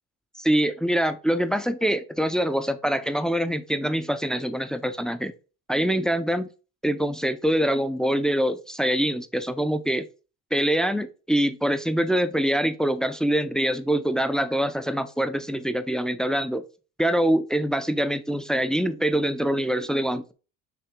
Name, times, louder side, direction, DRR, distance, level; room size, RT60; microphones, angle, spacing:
voice 1, 0.4-5.3 5.7-6.5 6.8-10.0 10.5-16.6 17.0-20.3, right 1 dB, ahead, 0.4 m, -24 dB
5.8 x 2.4 x 3.6 m
supercardioid pair, 75°, 40 cm